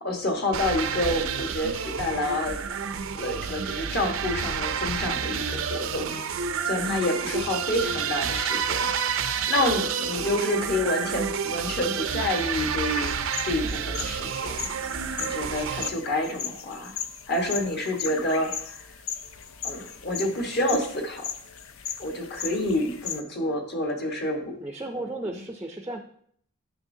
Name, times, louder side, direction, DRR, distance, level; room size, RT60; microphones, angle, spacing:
voice 1, 0.0-2.6 3.1-6.2 6.6-8.9 9.5-13.1 13.4-14.7 15.2-16.9 17.3-18.8 19.6-21.3 22.0-24.5 25.0-25.4, left 1 dB, 45° left, 2 dB, 1.3 m, -28 dB
sound 1, 0.5-15.9, right 7 dB, 60° right, 0.5 m, -29 dB
sound 2, 12.9-23.2, left 8 dB, 65° left, 0.5 m, -37 dB
voice 2, 24.6-26.0, right 2 dB, 10° right, 4 dB, 0.5 m, -34 dB
9.8 x 6.3 x 2.7 m, 0.62 s
head